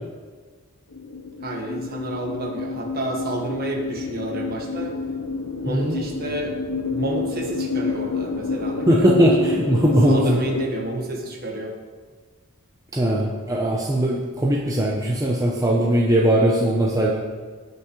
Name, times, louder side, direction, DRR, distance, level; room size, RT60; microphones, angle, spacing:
sound 1, 0.9-10.7, left 4 dB, 85° left, 0.8 m, -29 dB
voice 1, 1.4-4.9 5.6-6.5 6.8-9.3 9.8-11.7, right 2 dB, 45° right, 1 dB, 1.4 m, -30 dB
voice 2, 5.7-6.0 8.9-10.4 12.9-17.1, right 1 dB, 15° right, -2 dB, 0.7 m, -19 dB
16.5 x 5.8 x 3.1 m, 1.5 s
head